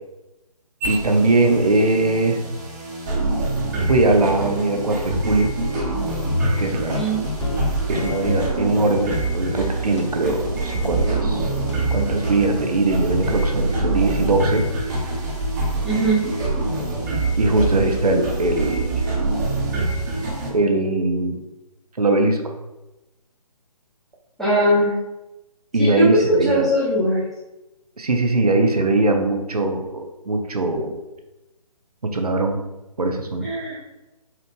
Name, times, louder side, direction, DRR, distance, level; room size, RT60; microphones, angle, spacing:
sound 1, 0.8-20.5, right 2 dB, 30° right, 1.0 m, -25 dB
voice 1, 0.9-2.4 3.9-5.5 6.6-7.0 7.9-11.5 11.9-14.6 17.4-19.0 20.5-21.4 22.0-22.5 25.7-26.6 28.0-30.9 32.1-32.6 33.0-33.5, right 2 dB, 80° right, 4 dB, 0.7 m, -21 dB
voice 2, 6.9-7.2 15.8-16.2 24.4-25.0 25.8-26.1 26.4-27.2 33.4-33.8, right 1 dB, ahead, -11 dB, 0.6 m, -20 dB
sound 2, 7.3-12.2, left 4 dB, 50° left, 0.5 m, -36 dB
4.3 x 2.5 x 3.5 m, 1.0 s
figure-of-eight pair, 145°, 19 cm